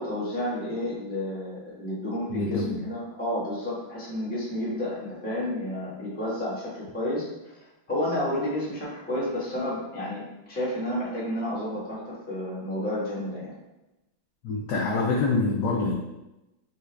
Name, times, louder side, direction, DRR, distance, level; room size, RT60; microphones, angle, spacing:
voice 1, 0.0-7.3 7.9-10.2 10.5-13.5, left 1 dB, 5° left, -8 dB, 0.9 m, -31 dB
voice 2, 2.3-2.8 14.4-15.9, left 3 dB, 70° left, -2 dB, 1.0 m, -25 dB
5.6 x 2.3 x 3.3 m, 0.97 s
omnidirectional pair, 2.3 m